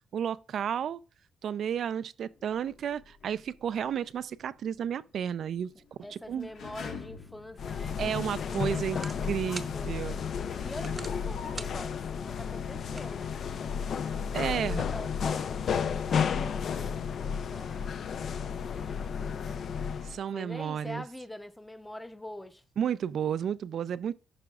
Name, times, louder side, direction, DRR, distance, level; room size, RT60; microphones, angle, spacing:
voice 1, 0.1-1.0 1.4-6.5 8.0-9.0 9.3-10.2 14.0-14.8 20.0-21.0 22.8-24.1, right 8 dB, 60° right, 0.4 m, -32 dB
sound 1, 2.3-8.4 9.0-9.1 9.9-14.2 14.5-14.6, left 5 dB, 75° left, 1.5 m, -49 dB
voice 2, 6.0-13.4 14.3-17.9 18.2-19.6 19.9-20.0 20.3-22.6, left 1 dB, 10° left, 0.8 m, -45 dB
sound 2, 7.6-20.2, left 7 dB, 60° left, 0.5 m, -32 dB
sound 3, 7.8-13.8, right 3 dB, 30° right, 0.8 m, -49 dB
11.5 x 4.9 x 2.4 m
cardioid pair, 90°, 0 cm